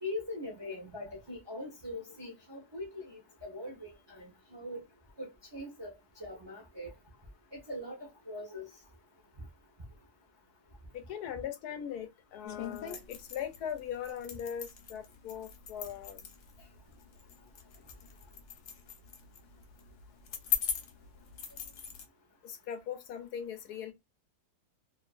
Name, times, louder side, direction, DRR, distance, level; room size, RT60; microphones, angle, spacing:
voice 1, 0.0-4.8 5.2-5.9 6.2-6.9 7.5-8.7, left 1 dB, 30° right, 0.5 m, -42 dB
voice 2, 11.1-16.2 22.4-23.9, left 8 dB, 80° left, 1.2 m, -40 dB
sound 1, 12.4-22.0, left 9 dB, 60° left, 0.9 m, -41 dB
2.6 x 2.5 x 2.4 m
omnidirectional pair, 1.7 m